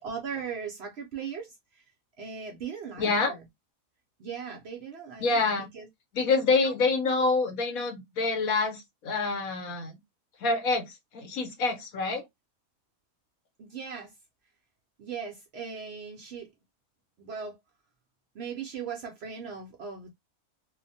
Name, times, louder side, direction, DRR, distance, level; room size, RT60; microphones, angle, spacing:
voice 1, 0.0-1.8 2.2-3.4 4.2-5.9 6.5-6.7 13.6-14.1 15.0-16.5 17.2-17.6 18.3-20.1, right 6 dB, 65° right, 0.6 m, -38 dB
voice 2, 3.0-3.4 5.2-5.7 6.1-10.0 10.4-12.2, left 3 dB, 80° left, 1.3 m, -27 dB
2.8 x 2.1 x 2.6 m
omnidirectional pair, 1.5 m